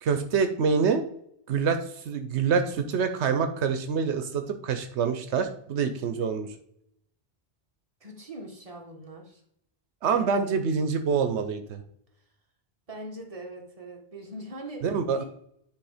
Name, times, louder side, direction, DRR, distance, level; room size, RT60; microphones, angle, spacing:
voice 1, 0.0-1.0 1.5-1.8 2.0-6.5 10.0-11.8 14.8-15.2, right 6 dB, 85° right, 8 dB, 1.0 m, -26 dB
voice 2, 8.0-9.4 10.1-10.5 12.9-14.8 15.2-15.3, right 1 dB, 30° right, 1 dB, 1.5 m, -41 dB
9.7 x 3.3 x 4.9 m, 0.71 s
omnidirectional pair, 1.1 m